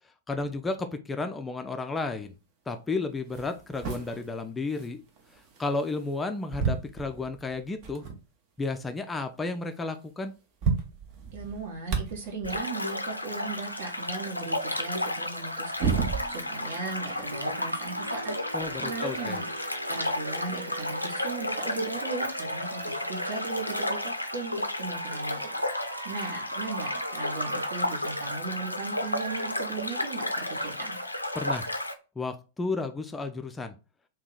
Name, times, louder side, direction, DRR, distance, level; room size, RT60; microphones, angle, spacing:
voice 1, 0.3-2.3 2.7-5.0 5.6-8.0 8.6-10.3 18.5-19.4 31.3-31.7 32.2-33.7, left 3 dB, 10° left, 7 dB, 0.3 m, -32 dB
sound 1, 2.7-2.8 3.2-6.2 6.5-8.3 8.8-8.9 9.1-9.2 10.1-10.2 10.4-12.7 15.2-16.7 17.0-19.3 20.3-20.4 21.4-21.5, right 6 dB, 40° right, 0.7 m, -34 dB
voice 2, 11.3-16.0 16.3-18.4 18.8-19.5 19.9-25.4 26.0-31.0, right 3 dB, 55° right, 2 dB, 1.1 m, -37 dB
sound 2, 12.4-31.9, left 1 dB, 90° left, 0.4 m, -33 dB
sound 3, 16.1-29.5, right 2 dB, 80° right, 0.5 m, -42 dB
2.8 x 2.2 x 3.7 m, 0.32 s
figure-of-eight pair, 95°, 0 cm